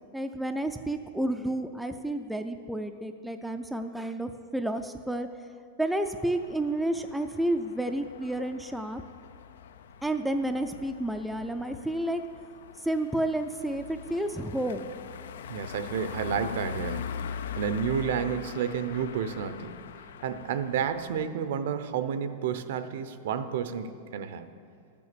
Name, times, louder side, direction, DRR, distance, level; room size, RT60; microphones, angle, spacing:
voice 1, 0.1-5.3 5.8-9.0 10.0-12.2 12.8-14.9, right 1 dB, ahead, 6 dB, 0.4 m, -30 dB
sound 1, 6.0-21.3, left 7 dB, 85° left, 0.4 m, -42 dB
voice 2, 15.5-19.8 20.2-24.5, right 7 dB, 70° right, 11 dB, 0.7 m, -31 dB
12.5 x 6.9 x 6.8 m, 2.3 s
supercardioid pair, 160°, 0 cm